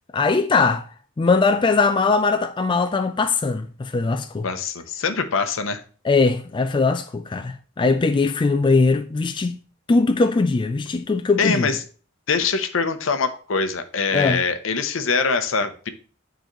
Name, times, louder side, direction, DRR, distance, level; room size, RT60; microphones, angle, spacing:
voice 1, 0.1-0.9 1.2-4.5 6.0-9.6 9.9-11.8 14.1-14.4, left 4 dB, 25° left, 0.3 m, -20 dB
voice 2, 4.4-5.8 11.4-11.8 12.3-15.9, left 5 dB, 75° left, 0.7 m, -23 dB
8.9 x 3.9 x 3.0 m
head